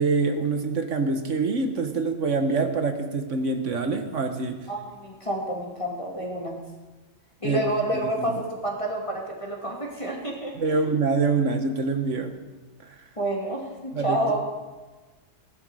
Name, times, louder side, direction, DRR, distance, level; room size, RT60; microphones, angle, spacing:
voice 1, 0.0-4.6 7.4-7.6 7.9-8.4 10.6-12.3 12.8-13.0 13.9-14.4, right 4 dB, 70° right, 6 dB, 1.5 m, -25 dB
voice 2, 4.7-6.6 7.4-10.6 13.2-14.4, right 1 dB, 25° left, -1 dB, 2.4 m, -29 dB
17.5 x 11.0 x 4.9 m, 1.2 s
omnidirectional pair, 1.3 m